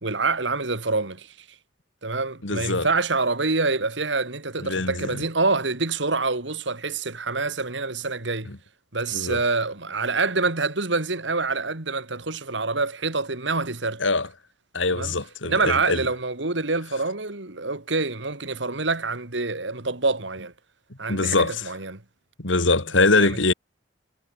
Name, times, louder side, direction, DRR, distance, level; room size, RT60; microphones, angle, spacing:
voice 1, 0.0-1.3 2.0-8.5 8.9-14.0 14.9-15.2 15.4-20.5 21.0-22.0 23.2-23.4, right 3 dB, 65° right, 2.5 m, -26 dB
voice 2, 2.4-2.9 4.6-5.2 8.5-8.6 9.1-9.4 14.0-14.3 14.7-16.0 21.1-21.7 22.4-23.5, left 3 dB, 80° left, 2.8 m, -23 dB
head